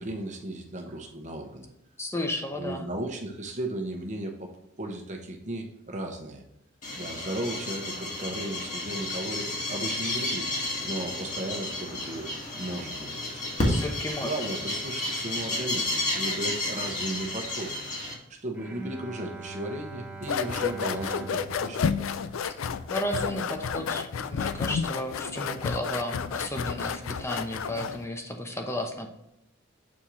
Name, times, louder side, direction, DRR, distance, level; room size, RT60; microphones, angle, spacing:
voice 1, 0.0-1.7 2.6-4.5 4.8-6.4 7.0-10.5 10.8-13.4 14.2-17.8 18.3-21.9, right 1 dB, 35° right, 2 dB, 1.1 m, -35 dB
voice 2, 2.0-2.8 13.7-14.3 22.9-29.1, left 1 dB, 15° left, 4 dB, 0.8 m, -33 dB
sound 1, 6.8-18.1, left 1 dB, 40° left, 1.6 m, -31 dB
Bowed string instrument, 18.5-23.8, right 3 dB, 10° right, 1.1 m, -43 dB
sound 2, 20.2-28.0, left 6 dB, 75° left, 0.4 m, -31 dB
7.4 x 4.3 x 3.1 m, 0.87 s
head